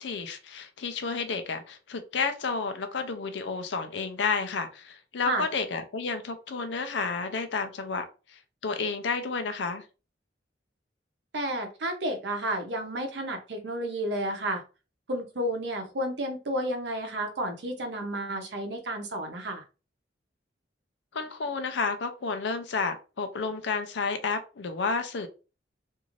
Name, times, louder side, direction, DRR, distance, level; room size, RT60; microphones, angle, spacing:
voice 1, 0.0-8.1 8.6-9.8 21.1-25.3, left 4 dB, 75° left, 0.5 m, -31 dB
voice 2, 11.3-14.6 15.1-19.6, right 1 dB, 70° right, 0.8 m, -31 dB
2.6 x 2.5 x 3.0 m
head